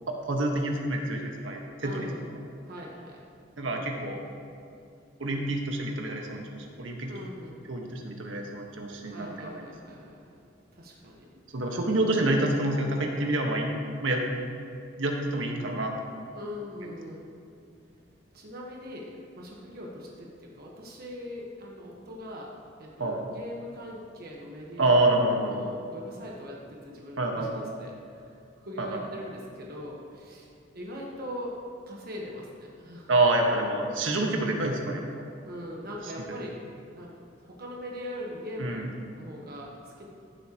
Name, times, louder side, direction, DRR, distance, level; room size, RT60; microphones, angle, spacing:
voice 1, 0.1-2.1 3.6-4.2 5.2-7.1 7.7-9.6 11.5-13.7 14.0-14.2 15.0-16.2 16.8-16.9 23.0-23.2 24.8-25.6 27.2-27.7 28.8-29.0 33.1-35.2 36.3-36.4 38.6-38.9, right 2 dB, 85° right, 1 dB, 1.4 m, -27 dB
voice 2, 1.8-2.2 2.6-3.2 5.4-5.5 7.1-7.6 9.1-10.2 10.7-11.2 16.3-17.2 18.3-19.1 19.3-22.5 22.8-28.3 28.6-31.6 31.9-33.1 35.4-36.6 36.9-37.1 37.5-38.8 39.1-40.1, left 1 dB, 55° right, -2 dB, 1.2 m, -41 dB
14.5 x 7.7 x 2.9 m, 2.5 s
head